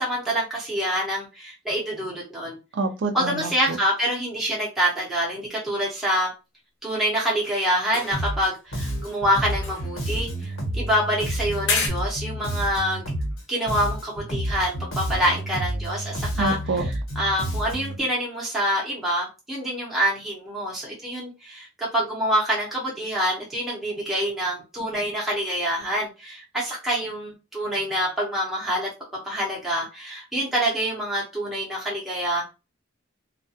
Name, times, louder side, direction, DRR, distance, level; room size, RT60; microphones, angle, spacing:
voice 1, 0.0-2.6 3.1-6.3 6.8-13.0 13.5-16.9 17.2-28.9 29.2-32.4, equal, ahead, 0.6 m, -26 dB
voice 2, 2.7-3.8 16.4-16.8, right 3 dB, 65° right, 0.4 m, -27 dB
sound 1, 7.4-8.6 8.8-10.9 11.6-11.9, left 4 dB, 70° left, 0.7 m, -32 dB
Bass guitar, 8.1-8.5 8.7-13.4 13.7-18.0, right 1 dB, 90° left, 1.1 m, -30 dB
2.3 x 2.2 x 2.7 m
head